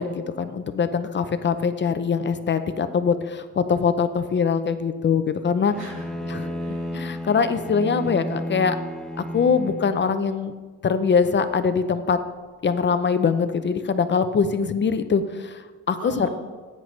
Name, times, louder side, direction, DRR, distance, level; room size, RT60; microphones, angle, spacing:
voice 1, 0.0-5.7 6.3-6.4 6.9-8.8 9.2-10.5 10.8-12.2 12.6-16.3, left 6 dB, 35° left, 10 dB, 0.6 m, -23 dB
Bowed string instrument, 5.7-10.1, equal, ahead, 0.9 m, -32 dB
voice 2, 5.8-6.9 16.0-16.3, right 2 dB, 70° right, -3 dB, 3.5 m, -39 dB
15.5 x 9.5 x 3.2 m, 1.4 s
cardioid pair, 135°, 31 cm